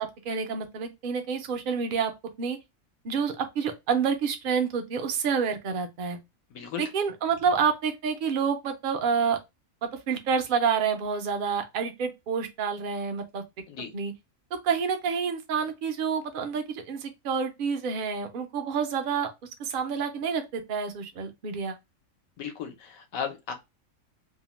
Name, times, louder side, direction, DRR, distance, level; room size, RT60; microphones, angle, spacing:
voice 1, 0.0-2.1 2.4-2.6 3.0-6.2 6.8-9.4 9.8-13.4 13.9-14.1 14.6-19.3 19.6-21.8, right 6 dB, 60° right, 0.5 m, -28 dB
voice 2, 6.5-6.9 13.7-13.9 22.4-23.5, left 7 dB, 80° left, 1.1 m, -35 dB
2.7 x 2.0 x 3.0 m
omnidirectional pair, 1.4 m